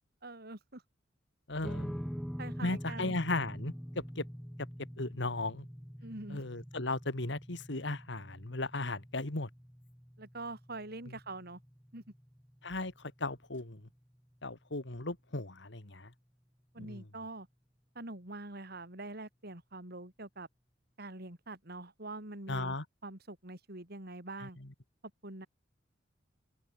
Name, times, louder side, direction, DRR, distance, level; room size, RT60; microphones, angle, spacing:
voice 1, 0.2-0.8 2.4-3.2 6.0-6.4 10.2-11.6 11.9-12.0 16.7-17.5 17.9-20.5 21.0-22.8 23.0-24.6 25.2-25.5, right 2 dB, 55° right, 4.7 m, -44 dB
voice 2, 1.5-1.9 2.6-3.7 4.2-4.3 5.0-5.7 6.3-9.5 12.6-12.9 13.2-13.8 14.4-16.1 16.8-17.0 22.5-22.8, left 2 dB, 65° left, 2.4 m, -36 dB
sound 1, 1.6-14.2, equal, ahead, 4.7 m, -45 dB
open air
head